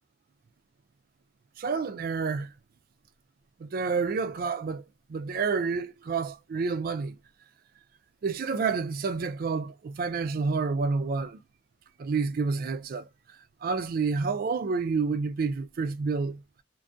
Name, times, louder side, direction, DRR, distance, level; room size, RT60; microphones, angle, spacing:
voice 1, 1.6-2.5 3.6-7.2 8.2-11.4 12.0-13.1 13.6-16.4, right 4 dB, 45° right, 0.3 m, -29 dB
2.5 x 2.5 x 2.3 m
head